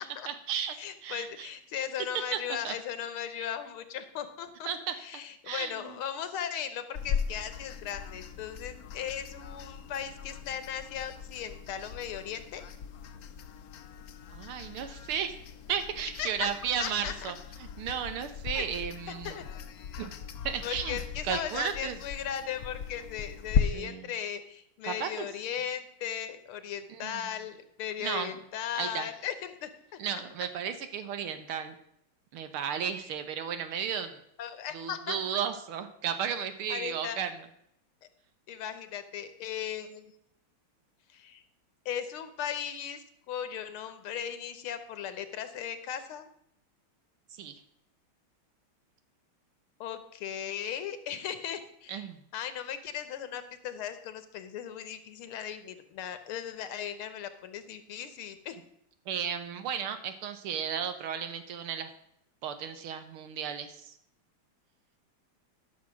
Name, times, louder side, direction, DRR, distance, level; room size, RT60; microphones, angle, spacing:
voice 1, 0.3-0.7 1.0-1.5 2.3-2.4 2.6-2.7 3.4-3.5 4.7-4.9 5.5-6.0 14.3-15.3 15.7-17.3 17.8-19.4 20.0-20.1 20.5-21.0 21.2-22.0 23.7-24.1 24.8-25.3 26.9-27.2 28.0-28.3 28.8-29.1 30.0-31.7 32.3-34.1 34.7-37.3 47.3-47.6 51.9-52.2 59.1-61.9 62.4-63.9, right 8 dB, 85° right, 9 dB, 1.8 m, -34 dB
voice 2, 0.8-4.7 5.0-12.6 16.2-16.5 16.8-17.3 18.6-18.7 19.1-19.5 20.6-30.0 34.4-35.2 36.7-37.2 38.5-40.1 41.1-41.4 41.9-46.3 49.8-52.1 52.3-58.6, left 9 dB, 80° left, 11 dB, 1.9 m, -37 dB
sound 1, 6.9-23.6, left 7 dB, 65° left, 0.9 m, -38 dB
12.0 x 6.3 x 6.2 m, 0.73 s
omnidirectional pair, 2.3 m